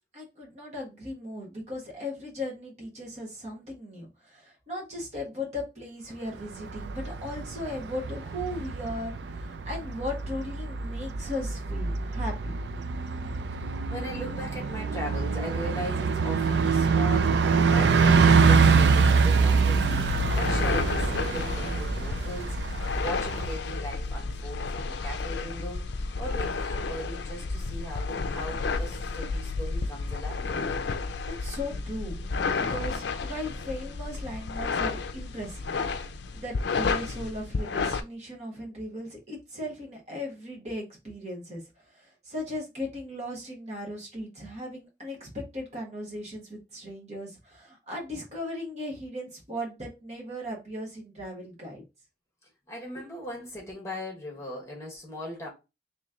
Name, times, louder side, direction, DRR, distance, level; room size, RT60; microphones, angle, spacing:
voice 1, 0.1-12.5 31.2-32.2 32.5-51.8, left 1 dB, 40° right, 1.3 m, -37 dB
Bus, 6.4-23.5, right 5 dB, 80° right, 0.4 m, -25 dB
voice 2, 13.5-19.8 20.3-30.6 52.7-55.5, equal, 15° left, 1.2 m, -39 dB
sound 1, 19.4-38.0, left 4 dB, 80° left, 0.4 m, -31 dB
3.1 x 3.0 x 3.7 m
head